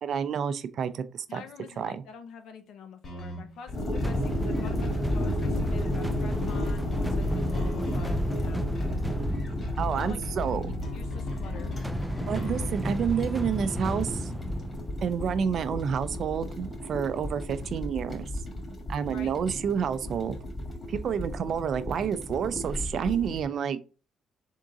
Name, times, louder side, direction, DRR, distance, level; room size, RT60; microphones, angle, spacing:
voice 1, 0.0-1.4 1.8-2.0 9.8-10.8 12.3-14.3 15.0-18.3 18.9-20.4 20.9-23.8, right 7 dB, 65° right, 0.5 m, -29 dB
voice 2, 1.3-8.6 9.9-10.2 10.6-11.8 19.1-19.3, left 6 dB, 80° left, 0.9 m, -46 dB
sound 1, 3.0-12.6, left 3 dB, 50° left, 1.9 m, -39 dB
sound 2, 3.7-23.4, left 1 dB, 35° left, 1.4 m, -33 dB
sound 3, 4.0-15.9, equal, 5° right, 0.4 m, -35 dB
3.7 x 3.7 x 3.9 m
cardioid pair, 90°, 0 cm